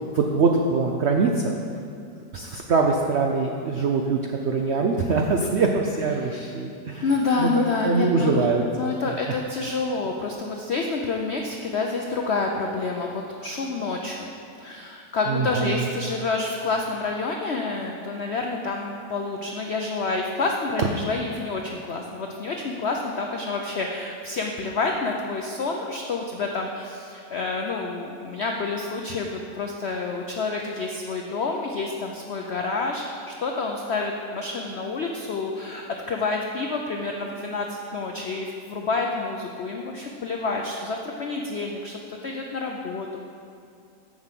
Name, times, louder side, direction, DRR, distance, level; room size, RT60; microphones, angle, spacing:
voice 1, 0.1-1.5 2.3-7.1 7.4-8.6 9.3-9.4 15.3-15.8, right 4 dB, 85° right, 2 dB, 0.5 m, -23 dB
voice 2, 7.0-8.5 8.7-14.3 14.6-43.2, left 3 dB, 75° left, 1 dB, 0.6 m, -28 dB
7.3 x 6.3 x 7.6 m, 2.5 s
omnidirectional pair, 1.9 m